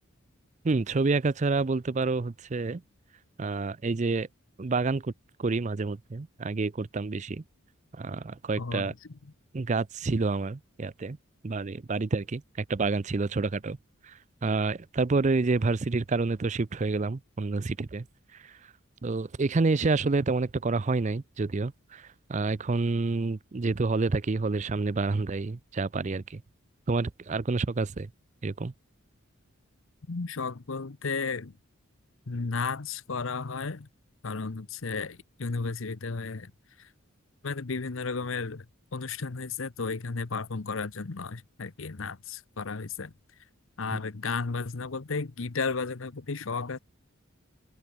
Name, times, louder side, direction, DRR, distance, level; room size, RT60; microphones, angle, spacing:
voice 1, 0.6-2.8 3.4-4.3 4.6-5.1 5.4-7.4 7.9-8.9 9.5-11.2 11.4-13.8 14.0-18.0 18.3-18.6 19.0-26.4 26.9-28.1 28.4-28.7 43.9-44.0, right 3 dB, 35° right, 0.5 m, -28 dB
voice 2, 8.6-8.9 30.1-31.5 32.3-33.9 34.2-36.5 37.4-38.7 38.9-43.1 43.8-46.8, left 4 dB, 65° left, 0.9 m, -33 dB
open air
head